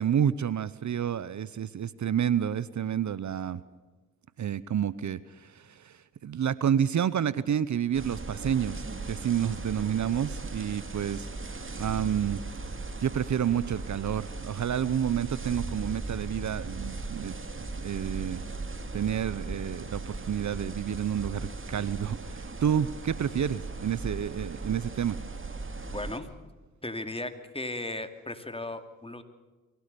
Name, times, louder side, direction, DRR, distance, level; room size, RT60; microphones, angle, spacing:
voice 1, 0.0-3.6 4.4-12.4 13.0-18.4 18.9-25.2, right 9 dB, 55° right, 18 dB, 0.8 m, -29 dB
sound 1, 7.9-26.2, right 3 dB, 35° right, 2.6 m, -38 dB
voice 2, 25.9-26.3 26.8-29.2, left 2 dB, 15° left, 8 dB, 2.6 m, -36 dB
24.0 x 16.5 x 6.9 m, 1.3 s
supercardioid pair, 45°, 34 cm